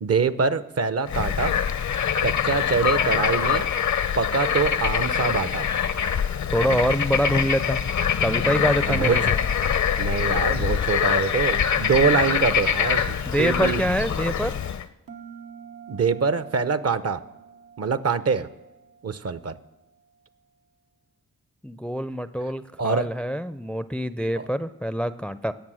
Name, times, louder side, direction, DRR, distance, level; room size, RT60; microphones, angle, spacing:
voice 1, 0.0-1.6 2.2-3.7 4.2-5.7 8.9-9.2 10.0-13.8 15.9-17.3 17.8-18.5 19.0-19.5 22.8-23.1 24.4-24.5, right 5 dB, 45° right, 14 dB, 0.7 m, -24 dB
Bird / Frog, 1.1-14.8, left 8 dB, 60° left, 0.7 m, -24 dB
voice 2, 6.5-7.8 8.2-9.4 13.3-14.5 21.6-25.5, equal, 5° left, 13 dB, 0.5 m, -25 dB
sound 1, 8.2-12.7 15.1-19.6, right 5 dB, 90° right, 1.3 m, -47 dB
18.0 x 7.2 x 6.3 m, 0.98 s
cardioid pair, 55°, 33 cm